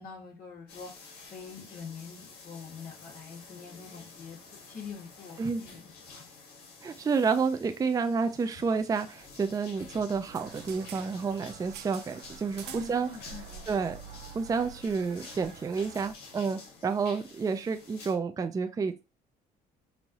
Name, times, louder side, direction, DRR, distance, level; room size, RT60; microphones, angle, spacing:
voice 1, 0.0-6.2 12.6-14.1, left 5 dB, 55° left, -1 dB, 1.9 m, -45 dB
sound 1, 0.7-18.1, left 4 dB, 75° left, 1.8 m, -50 dB
voice 2, 6.8-13.1 13.7-14.0 14.3-19.0, right 5 dB, 20° right, 8 dB, 0.4 m, -30 dB
sound 2, 10.3-16.1, right 8 dB, 75° right, 0.6 m, -47 dB
5.4 x 2.6 x 3.0 m, 0.29 s
cardioid pair, 110°, 17 cm